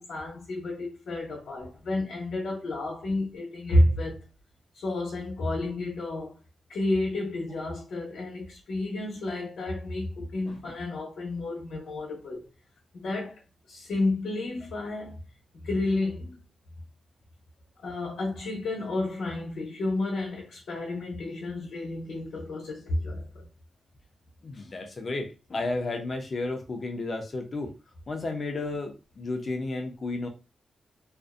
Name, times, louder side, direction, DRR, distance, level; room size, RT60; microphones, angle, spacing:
voice 1, 0.0-4.2 4.7-6.3 6.7-12.4 12.9-13.4 13.7-15.2 15.5-16.4 17.8-23.5, left 1 dB, 80° left, 0.8 m, -30 dB
voice 2, 24.4-27.7 28.1-30.3, left 2 dB, 35° left, 0.5 m, -33 dB
2.5 x 2.1 x 2.4 m
wide cardioid pair, 175°, 0 cm